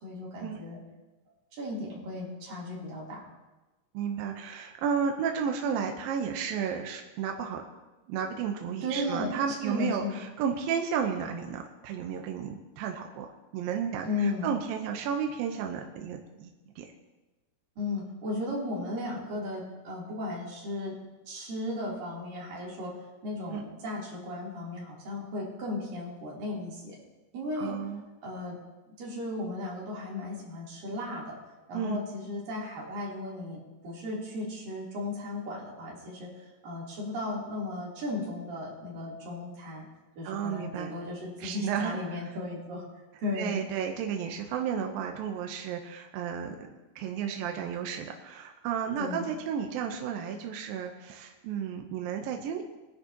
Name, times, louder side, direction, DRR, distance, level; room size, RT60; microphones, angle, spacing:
voice 1, 0.0-0.8 1.5-3.2 8.8-9.3 9.6-10.1 14.0-14.5 17.8-21.0 21.3-22.9 23.2-27.0 27.3-27.8 28.2-28.6 29.0-31.4 31.7-36.3 36.6-39.9 40.2-42.8 43.2-43.6 49.0-49.2, left 2 dB, 60° right, -5 dB, 4.8 m, -35 dB
voice 2, 3.9-7.6 8.1-13.3 13.5-16.5 16.8-16.9 23.5-23.6 27.6-28.0 31.7-32.0 40.2-40.9 41.4-42.2 43.3-46.7 47.0-52.6, right 7 dB, 75° right, 3 dB, 2.4 m, -32 dB
22.5 x 10.5 x 2.9 m, 1.1 s
omnidirectional pair, 4.7 m